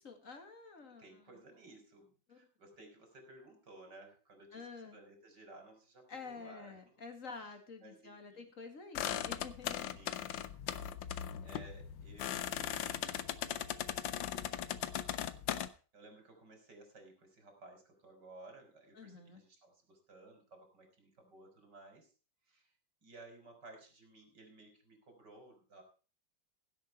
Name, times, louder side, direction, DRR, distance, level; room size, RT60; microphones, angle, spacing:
voice 1, 0.0-1.2 2.3-2.4 4.5-5.0 6.1-10.0 18.9-19.4, left 4 dB, 45° left, 6 dB, 2.5 m, -49 dB
voice 2, 0.8-6.8 7.3-8.5 10.0-10.3 11.4-13.6 15.9-22.1 22.5-22.7 23.0-25.8, right 2 dB, 60° right, 4 dB, 4.7 m, -57 dB
sound 1, 9.0-15.7, left 10 dB, 80° left, 1.6 m, -39 dB
16.5 x 8.2 x 4.5 m, 0.37 s
omnidirectional pair, 2.1 m